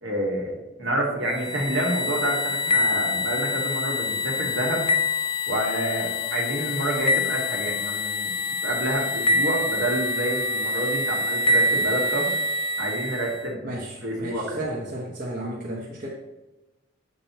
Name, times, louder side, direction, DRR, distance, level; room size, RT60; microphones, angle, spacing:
voice 1, 0.0-4.8 5.5-8.3 8.6-12.3 12.8-13.7 14.0-14.6, right 1 dB, 65° right, -1 dB, 1.6 m, -28 dB
sound 1, 1.3-13.4, left 2 dB, 25° left, 0.3 m, -26 dB
voice 2, 13.6-16.1, right 1 dB, 40° right, -4 dB, 1.0 m, -33 dB
8.1 x 5.3 x 2.9 m, 1.0 s
head